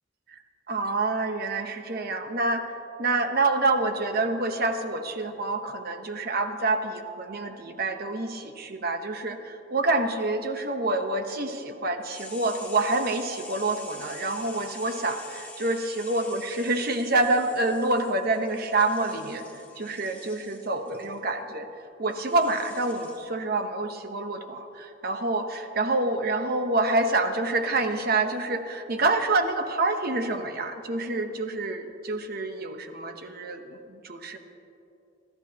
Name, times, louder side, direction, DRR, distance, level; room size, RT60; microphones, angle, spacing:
voice 1, 0.7-21.7 22.0-34.4, right 2 dB, 55° right, 6 dB, 1.0 m, -27 dB
sound 1, 12.1-21.2 22.1-23.2, left 3 dB, 10° left, 2.2 m, -46 dB
28.0 x 13.0 x 2.9 m, 2.9 s
head